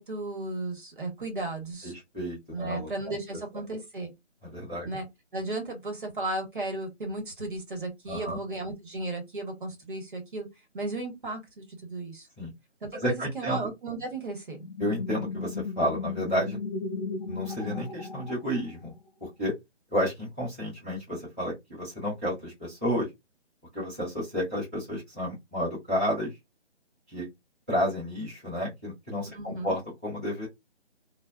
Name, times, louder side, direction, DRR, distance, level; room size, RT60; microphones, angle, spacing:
voice 1, 0.0-1.9 2.5-4.1 4.8-5.1 5.3-10.5 10.7-12.3 12.8-14.7 29.3-29.8, right 2 dB, 45° right, 1.0 m, -35 dB
voice 2, 1.8-2.9 4.5-4.9 8.1-8.4 12.4-12.5 12.9-13.7 14.8-16.6 17.3-18.9 19.4-19.5 19.9-23.1 23.7-26.3 27.1-27.3 27.7-30.5, equal, 10° right, 0.7 m, -31 dB
sound 1, 14.6-19.0, left 4 dB, 30° left, 0.9 m, -35 dB
2.6 x 2.1 x 2.3 m
hypercardioid pair, 170°, 35 cm